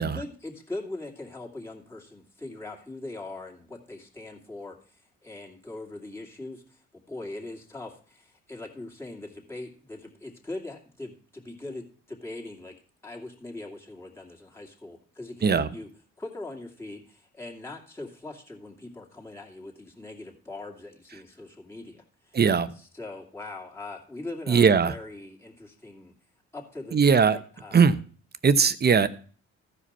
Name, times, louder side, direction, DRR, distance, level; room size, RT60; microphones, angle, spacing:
voice 1, 0.0-12.8 13.0-15.9 16.2-22.4 22.8-26.1 26.5-27.3 27.6-27.8, left 2 dB, 10° left, -2 dB, 2.5 m, -41 dB
voice 2, 22.3-22.7 24.5-25.0 26.9-27.4 27.7-28.0 28.4-29.1, right 6 dB, 35° right, 13 dB, 0.8 m, -20 dB
15.0 x 5.0 x 5.5 m, 0.42 s
cardioid pair, 90°, 30 cm